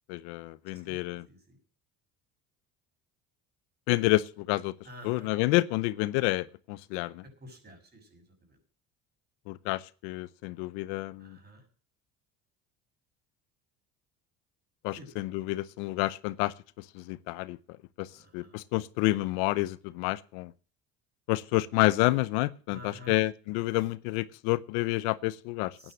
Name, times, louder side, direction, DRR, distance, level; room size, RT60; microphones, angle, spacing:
voice 1, 0.1-1.3 3.9-4.7 5.0-7.2 9.5-11.4 14.8-16.5 16.9-17.6 18.0-18.1 18.3-20.5 21.3-25.7, left 19 dB, 85° left, 0.7 m, -29 dB
voice 2, 4.8-5.3 7.4-8.2 11.2-11.6 15.0-15.1 18.1-18.5 22.7-23.1 25.8-25.9, left 1 dB, 30° right, 6.6 m, -49 dB
11.0 x 10.0 x 7.6 m
supercardioid pair, 95°, 34 cm